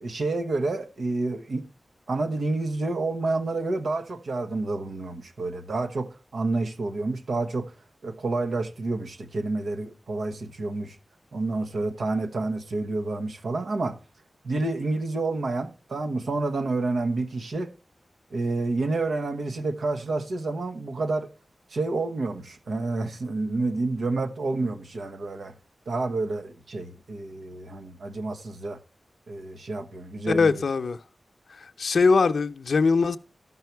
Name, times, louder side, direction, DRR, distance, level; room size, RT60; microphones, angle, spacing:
voice 1, 0.0-1.7 2.1-7.7 8.0-11.0 11.3-14.0 14.4-17.7 18.3-21.3 21.7-25.5 25.9-28.8 29.3-30.5, right 3 dB, 90° right, 1.1 m, -29 dB
voice 2, 30.3-31.0 31.5-33.2, left 4 dB, 85° left, 0.7 m, -22 dB
13.5 x 5.6 x 4.5 m
wide cardioid pair, 120°, 0 cm